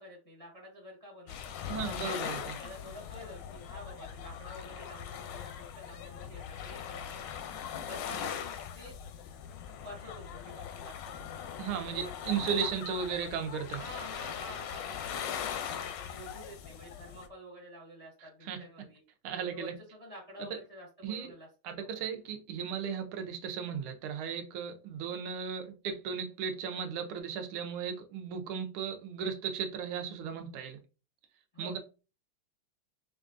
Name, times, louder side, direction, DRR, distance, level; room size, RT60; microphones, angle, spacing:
voice 1, 0.0-2.0 2.6-7.2 7.8-8.9 9.8-12.1 12.5-13.0 13.8-19.0 19.5-22.0 31.5-31.8, equal, 40° left, 0.5 m, -49 dB
sound 1, 1.3-17.3, left 9 dB, 75° left, 1.0 m, -40 dB
voice 2, 1.7-2.6 11.6-13.8 18.2-18.6 19.2-19.7 21.0-21.3 21.6-30.8 31.6-31.8, right 7 dB, 80° right, 1.5 m, -36 dB
5.2 x 2.3 x 2.5 m
omnidirectional pair, 2.4 m